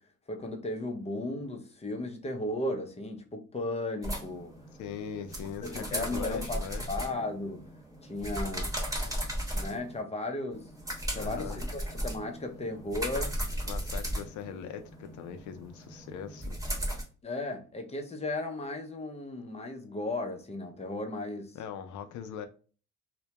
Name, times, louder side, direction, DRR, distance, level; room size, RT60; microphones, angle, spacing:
voice 1, 0.3-4.5 5.6-7.7 8.0-8.7 9.0-9.2 9.5-10.7 11.1-13.4 17.2-21.6, left 2 dB, 20° left, 0.5 m, -35 dB
sound 1, 4.0-10.0 10.5-17.0, equal, 10° right, 1.0 m, -36 dB
voice 2, 4.8-6.8 11.1-11.6 13.6-16.6 21.5-22.5, left 8 dB, 75° left, 0.4 m, -40 dB
2.1 x 2.1 x 2.8 m
cardioid pair, 90°, 30 cm